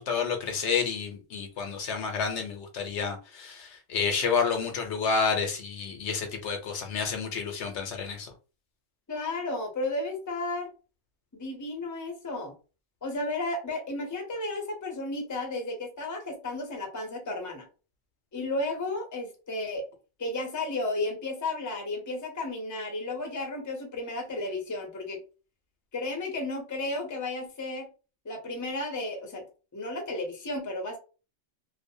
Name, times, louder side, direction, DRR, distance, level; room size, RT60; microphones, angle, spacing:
voice 1, 0.0-8.3, left 5 dB, 70° left, 0.9 m, -30 dB
voice 2, 9.1-10.7 11.3-12.5 13.0-17.7 18.3-19.8 20.2-25.2 25.9-27.9 28.2-29.4 29.7-31.0, left 2 dB, 20° left, 0.5 m, -33 dB
2.5 x 2.1 x 2.6 m
omnidirectional pair, 1.3 m